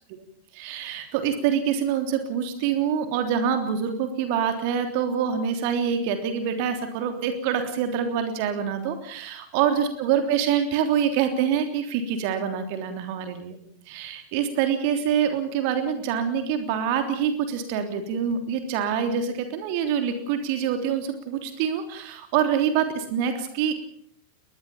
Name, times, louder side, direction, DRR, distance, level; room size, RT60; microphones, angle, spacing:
voice 1, 0.5-13.6 13.9-23.7, right 8 dB, 45° right, 7 dB, 3.4 m, -25 dB
21.5 x 21.5 x 7.3 m, 0.63 s
figure-of-eight pair, 90°, 0 cm